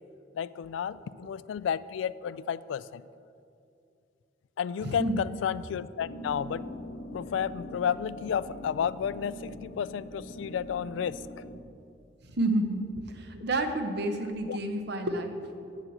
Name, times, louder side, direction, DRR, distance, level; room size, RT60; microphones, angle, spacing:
voice 1, 0.4-3.0 4.6-6.6 7.1-11.2 14.5-14.6, left 8 dB, 90° left, 17 dB, 0.3 m, -32 dB
voice 2, 4.8-5.2 12.4-12.9 13.2-15.8, right 1 dB, 65° right, 6 dB, 0.9 m, -30 dB
sound 1, 6.0-11.6, equal, 75° left, 1.1 m, -42 dB
7.7 x 7.3 x 7.8 m, 2.5 s
head